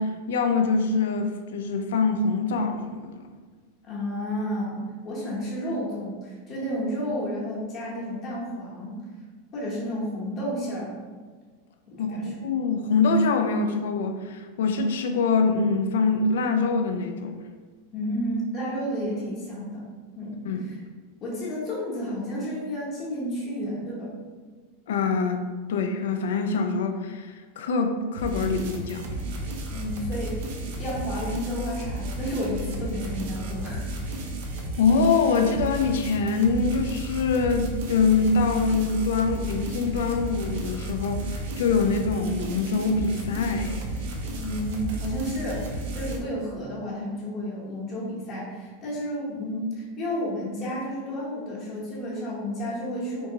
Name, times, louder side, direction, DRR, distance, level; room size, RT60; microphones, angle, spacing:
voice 1, 0.0-3.2 12.0-12.2 12.4-17.4 20.4-20.6 24.9-25.4 25.7-29.1 34.8-43.8, left 4 dB, 85° left, 5 dB, 0.4 m, -24 dB
voice 2, 3.8-9.0 9.5-11.1 11.9-12.3 17.9-19.8 20.2-20.8 21.2-24.1 29.7-33.8 44.3-53.3, equal, 30° left, -5 dB, 0.9 m, -31 dB
sound 1, 28.1-46.2, right 1 dB, 60° right, 0.5 m, -33 dB
3.4 x 2.8 x 2.8 m, 1.5 s
supercardioid pair, 160°, 0 cm